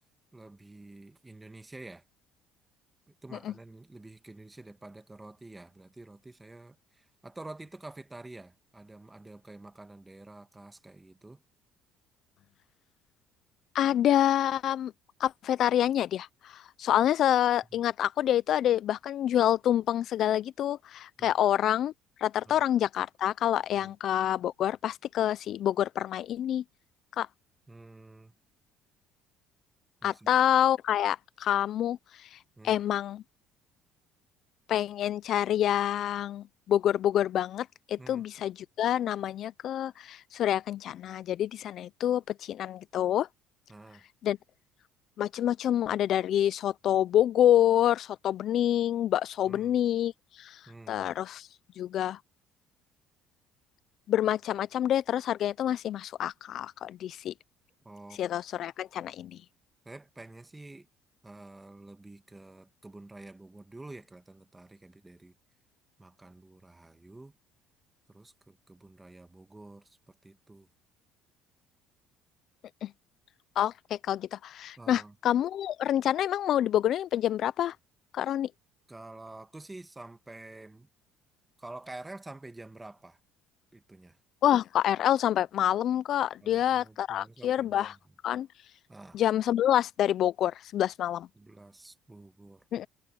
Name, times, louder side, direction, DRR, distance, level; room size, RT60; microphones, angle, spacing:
voice 1, 0.3-2.0 3.2-11.4 17.7-17.8 21.2-21.3 22.5-22.6 23.8-23.9 27.7-28.3 30.0-30.3 32.6-32.8 38.0-38.2 43.7-44.0 49.5-49.8 50.7-51.0 57.8-58.2 59.8-60.9 61.2-65.3 66.0-67.4 68.1-70.7 74.8-75.2 78.9-80.9 81.6-83.2 83.7-84.2 86.4-88.0 88.9-89.2 91.3-92.7, right 2 dB, 10° right, 1.5 m, -48 dB
voice 2, 13.7-14.9 15.2-21.9 22.2-26.6 27.2-27.3 30.0-32.4 32.6-33.2 34.7-43.3 44.2-44.4 45.2-50.6 50.9-51.5 51.8-52.2 54.1-57.3 58.2-59.4 72.8-72.9 73.6-77.8 78.1-78.5 84.4-88.0 88.2-88.5 89.1-91.3 92.7-92.9, left 11 dB, 55° left, 0.4 m, -27 dB
cardioid pair, 115°, 0 cm